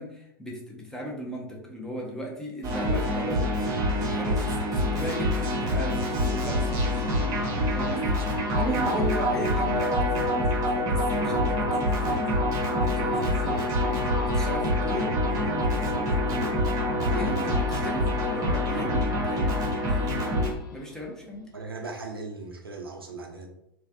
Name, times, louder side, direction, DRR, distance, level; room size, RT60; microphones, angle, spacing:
voice 1, 0.0-3.5 4.0-7.1 7.7-16.5 17.2-21.5, equal, 5° left, -2 dB, 0.7 m, -36 dB
sound 1, 2.6-20.5, left 1 dB, 30° right, 0.9 m, -26 dB
sound 2, 4.7-21.8 22.2-22.3, left 2 dB, 60° left, 0.6 m, -42 dB
voice 2, 17.0-17.6 21.5-23.5, right 3 dB, 80° right, 2 dB, 0.6 m, -37 dB
3.2 x 2.3 x 2.6 m, 0.78 s
figure-of-eight pair, 90°, 12 cm